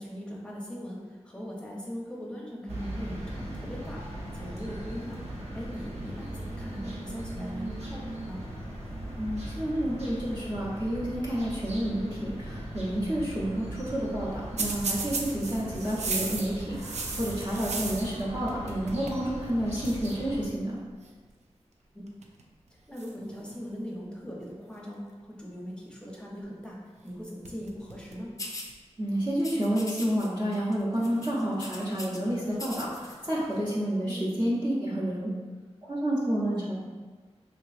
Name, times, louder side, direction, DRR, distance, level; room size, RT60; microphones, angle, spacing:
voice 1, 0.0-4.0 4.4-5.2 5.5-8.4 15.5-15.8 22.9-25.0 25.4-26.8 27.0-28.3 34.0-34.2 36.5-36.7, equal, 10° left, -3 dB, 0.7 m, -40 dB
sound 1, 2.7-20.5, right 1 dB, 70° right, 0.8 m, -39 dB
voice 2, 9.2-20.8 29.0-35.3 35.8-36.7, right 1 dB, 40° right, -8 dB, 0.9 m, -30 dB
sound 2, 14.6-18.2 18.5-19.2 19.5-19.6 19.8-20.1 21.0-21.3 22.1-22.4 23.0-24.0 27.0-27.1 27.5-28.3 28.7-28.8 29.7-29.8 31.0-31.8 33.1-33.6, right 4 dB, 85° right, 0.4 m, -37 dB
sound 3, 28.4-28.7 29.4-30.3 30.5-30.8 31.0-32.2 32.5-33.2, left 2 dB, 30° left, 0.4 m, -40 dB
3.5 x 2.9 x 2.4 m, 1.4 s
wide cardioid pair, 75°, 11 cm